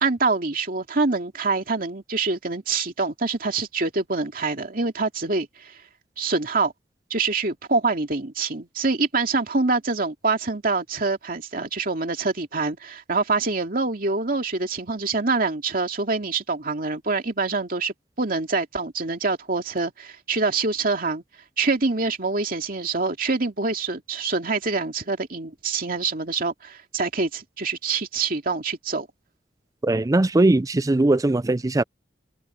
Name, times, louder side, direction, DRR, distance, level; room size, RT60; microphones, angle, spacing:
voice 1, 0.0-5.8 6.2-6.7 7.1-21.2 21.6-29.1, right 3 dB, 50° right, 2.6 m, -25 dB
voice 2, 29.8-31.8, right 2 dB, 20° right, 0.4 m, -20 dB
head